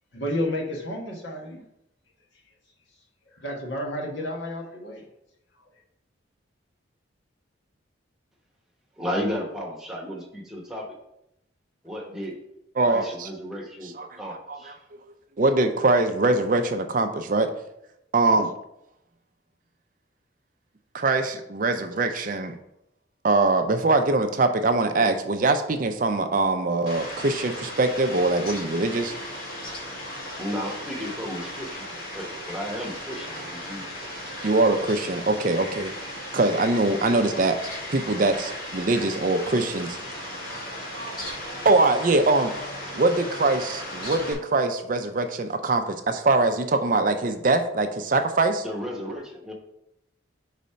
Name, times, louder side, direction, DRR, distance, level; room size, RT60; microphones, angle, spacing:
voice 1, 0.1-1.6 3.3-5.0 5.5-5.8, left 1 dB, 65° left, -1 dB, 1.4 m, -31 dB
voice 2, 9.0-11.0 11.8-12.3 12.8-14.8 30.4-31.9 32.1-33.9 48.6-49.5, equal, ahead, -2 dB, 1.1 m, -33 dB
voice 3, 12.8-13.3 13.8-14.1 14.5-14.8 15.4-17.5 18.1-18.5 20.9-22.5 23.2-29.1 34.4-35.9 36.3-37.6 37.9-40.0 41.6-42.5 43.0-48.6, right 2 dB, 40° right, 7 dB, 0.5 m, -23 dB
Fowl, 26.9-44.3, left 1 dB, 45° left, 1.9 m, -36 dB
5.2 x 4.1 x 5.5 m, 0.82 s
head